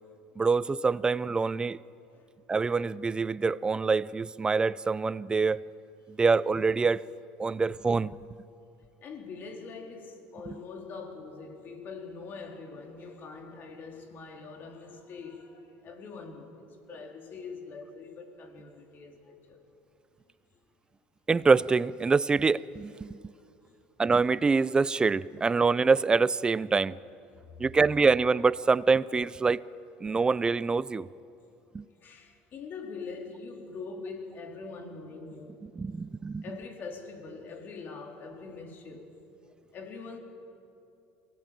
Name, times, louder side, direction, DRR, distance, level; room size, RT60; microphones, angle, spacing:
voice 1, 0.4-1.8 2.5-5.6 6.1-7.0 7.4-8.2 21.3-23.3 24.0-27.0 27.6-29.6 30.0-31.1 31.7-31.8 35.8-36.4, right 4 dB, 20° right, 0.5 m, -25 dB
voice 2, 9.0-19.6 27.5-27.6 30.1-30.2 32.0-35.7 36.4-39.1 39.7-40.2, left 4 dB, 45° left, 3.8 m, -43 dB
24.0 x 18.0 x 9.1 m
supercardioid pair, 115°, 5 cm